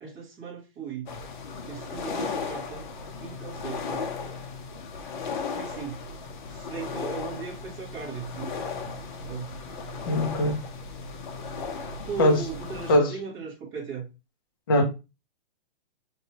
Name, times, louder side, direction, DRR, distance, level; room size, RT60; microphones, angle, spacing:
voice 1, 0.0-1.1 1.6-2.8 3.2-4.0 5.5-6.0 6.5-9.5 10.0-10.6 12.1-14.1, right 5 dB, 15° right, 0.9 m, -38 dB
sound 1, 1.1-13.0, left 5 dB, 55° left, 0.7 m, -36 dB
voice 2, 10.1-10.6 12.2-12.4 12.9-13.2 14.7-14.8, left 1 dB, 25° left, 0.4 m, -21 dB
4.5 x 2.6 x 2.9 m
hypercardioid pair, 175°, 29 cm